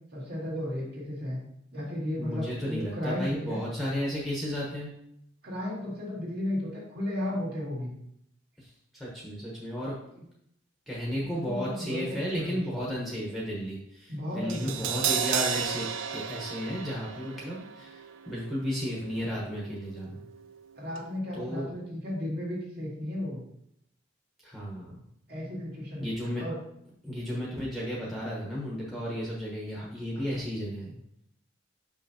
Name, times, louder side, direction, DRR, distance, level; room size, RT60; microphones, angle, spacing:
voice 1, 0.1-1.4 1.7-3.6 5.4-8.0 10.1-10.2 11.2-12.6 14.1-15.0 20.8-23.4 25.3-26.1 26.4-26.5 30.1-30.3, left 1 dB, 50° right, -4 dB, 2.2 m, -34 dB
voice 2, 2.2-4.9 8.6-9.9 10.9-15.9 16.1-18.0 18.3-20.2 21.3-21.7 24.4-24.9 26.0-26.4 27.0-31.0, equal, ahead, -5 dB, 1.1 m, -33 dB
Crash cymbal, 14.5-20.7 20.9-21.1, right 8 dB, 80° right, 0.5 m, -34 dB
6.3 x 5.6 x 2.8 m, 0.75 s
head